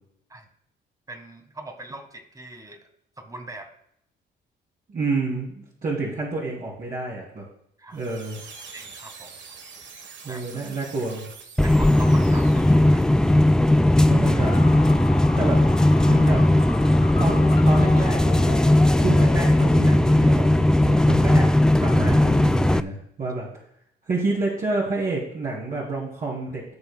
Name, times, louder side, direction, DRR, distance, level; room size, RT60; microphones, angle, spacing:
voice 1, 1.1-2.9 3.2-3.7 7.8-8.0 8.7-9.4 10.3-10.4 11.6-13.2, right 2 dB, 15° right, 6 dB, 1.5 m, -41 dB
voice 2, 4.9-7.4 7.9-8.4 10.2-11.3 14.1-14.6 15.4-16.4 17.2-18.6 19.0-21.5 21.8-23.5 24.1-26.7, right 3 dB, 45° right, -6 dB, 2.8 m, -29 dB
sound 1, 7.9-13.1, right 5 dB, 65° right, 1.2 m, -44 dB
sound 2, 11.6-22.8, left 1 dB, 5° left, 0.3 m, -18 dB
sound 3, 14.2-20.3, left 4 dB, 30° left, 1.1 m, -37 dB
16.5 x 6.8 x 2.2 m, 0.71 s
cardioid pair, 90°, 20 cm